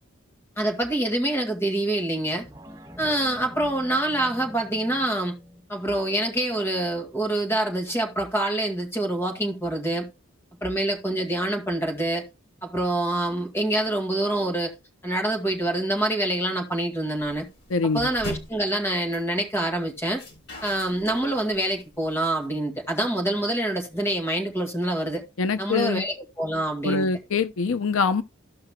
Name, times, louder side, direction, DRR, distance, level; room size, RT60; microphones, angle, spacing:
voice 1, 0.6-2.4 3.0-5.3 5.7-10.1 10.6-12.2 12.6-14.7 15.0-17.5 17.8-20.2 20.6-25.2 25.6-27.1, right 1 dB, 10° left, 2.0 m, -26 dB
sound 1, 2.3-7.3 7.7-7.8, equal, 20° right, 2.5 m, -47 dB
sound 2, 17.2-22.5, left 1 dB, 55° left, 3.7 m, -41 dB
voice 2, 17.7-18.1 25.4-26.1 26.8-28.2, left 4 dB, 80° left, 0.5 m, -24 dB
14.5 x 5.7 x 2.2 m
head